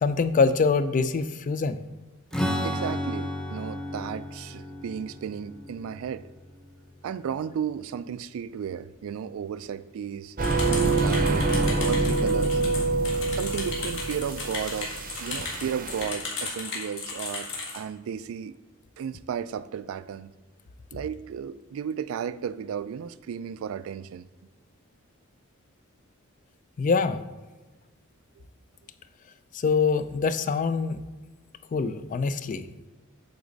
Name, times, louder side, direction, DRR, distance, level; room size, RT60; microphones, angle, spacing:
voice 1, 0.0-1.8 26.8-27.2 29.5-31.0 31.7-32.6, left 4 dB, 40° left, 0.3 m, -24 dB
Strum, 2.3-7.9, equal, 5° left, 0.6 m, -34 dB
voice 2, 2.6-6.3 7.0-10.4 10.7-12.6 13.3-17.5 17.7-18.6 19.0-20.3 20.9-24.3, right 7 dB, 75° right, 0.3 m, -34 dB
sound 1, 10.4-17.8, left 4 dB, 65° left, 1.7 m, -35 dB
sound 2, 10.4-16.1, right 3 dB, 45° right, 0.7 m, -26 dB
8.1 x 4.0 x 3.9 m
head